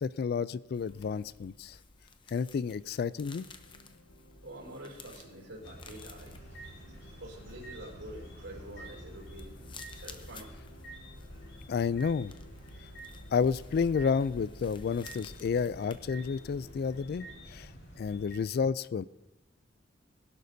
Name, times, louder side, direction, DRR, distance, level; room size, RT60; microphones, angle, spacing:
voice 1, 0.0-1.8 2.3-3.5 11.7-12.3 13.3-17.7 18.0-19.0, left 6 dB, 55° left, 18 dB, 0.3 m, -30 dB
sound 1, 0.7-17.0, left 3 dB, 25° left, 0.7 m, -54 dB
sound 2, 3.3-17.4, left 1 dB, 90° left, 1.1 m, -58 dB
voice 2, 4.4-6.6 6.9-9.5 10.0-10.5, right 1 dB, 75° right, -2 dB, 4.6 m, -47 dB
sound 3, 5.6-18.4, right 1 dB, 70° left, 4.7 m, -49 dB
20.0 x 11.5 x 2.7 m, 0.96 s
head